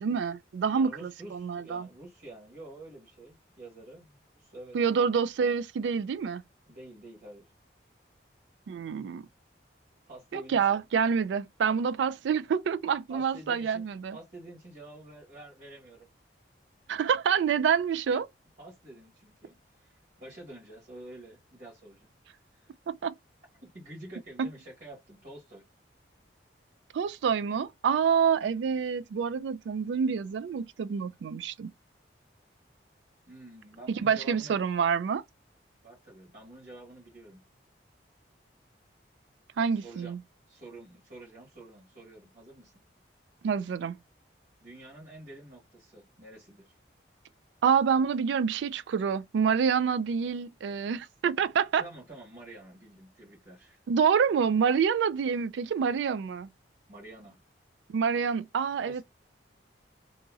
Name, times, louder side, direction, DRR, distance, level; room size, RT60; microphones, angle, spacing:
voice 1, 0.0-1.9 4.7-6.4 8.7-9.2 10.3-14.2 16.9-18.3 22.9-23.1 24.4-24.5 26.9-31.7 34.0-35.2 39.6-40.2 43.4-44.0 47.6-51.8 53.9-56.5 57.9-59.0, right 6 dB, 80° right, 0.3 m, -27 dB
voice 2, 0.7-4.8 6.7-7.5 10.1-10.8 13.1-16.1 18.1-18.2 18.6-22.1 22.5-22.7 23.6-25.6 33.3-34.5 35.8-37.4 39.7-40.2 40.5-42.7 44.6-46.8 51.7-53.8 56.9-57.4 58.8-59.0, right 1 dB, 55° right, 1.5 m, -48 dB
2.9 x 2.6 x 2.4 m
head